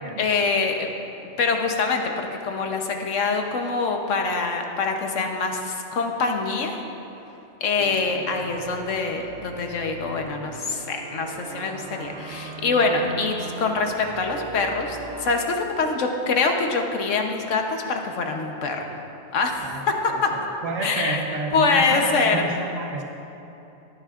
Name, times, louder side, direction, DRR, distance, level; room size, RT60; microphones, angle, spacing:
voice 1, 0.2-0.9 1.4-6.8 7.6-18.8 19.3-20.3 20.8-21.2 21.5-22.5, left 4 dB, 75° left, 3 dB, 1.3 m, -24 dB
sound 1, 7.8-15.4, right 5 dB, 60° right, 0.9 m, -38 dB
voice 2, 20.1-23.0, right 3 dB, 85° right, 1 dB, 1.5 m, -30 dB
17.5 x 9.8 x 2.5 m, 2.9 s
omnidirectional pair, 1.3 m